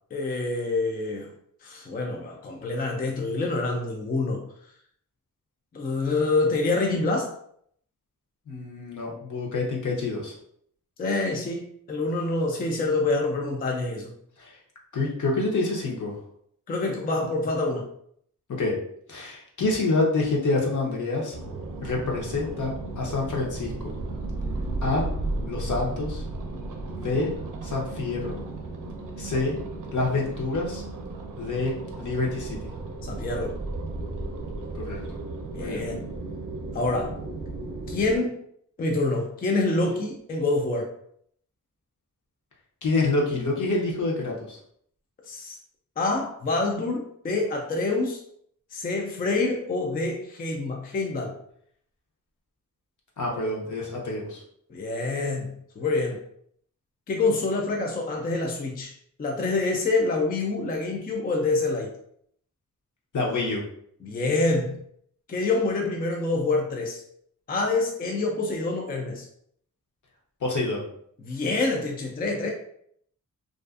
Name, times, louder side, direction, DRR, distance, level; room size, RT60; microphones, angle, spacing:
voice 1, 0.1-1.3 1.6-4.4 5.7-7.3 11.0-14.1 16.7-17.9 33.0-33.6 35.5-36.0 36.7-37.2 37.9-38.4 38.8-40.9 45.3-45.6 46.0-48.2 48.7-51.4 54.7-56.2 57.1-58.9 59.2-61.9 64.0-64.7 65.3-67.0 67.5-69.3 71.2-72.5, left 3 dB, 30° left, 1 dB, 0.3 m, -26 dB
voice 2, 8.5-10.3 14.4-14.5 14.9-16.1 18.6-18.7 19.1-21.4 21.8-23.9 24.8-25.0 25.5-26.2 26.9-27.3 27.6-28.4 29.2-29.5 29.9-30.8 31.4-32.6 34.7-35.0 35.6-35.8 42.8-44.6 53.2-54.4 63.1-63.6 70.4-70.8, left 3 dB, 60° left, -2 dB, 0.8 m, -27 dB
sound 1, 21.3-38.2, right 2 dB, 65° right, 0.5 m, -34 dB
2.4 x 2.3 x 2.4 m, 0.67 s
wide cardioid pair, 100°, 34 cm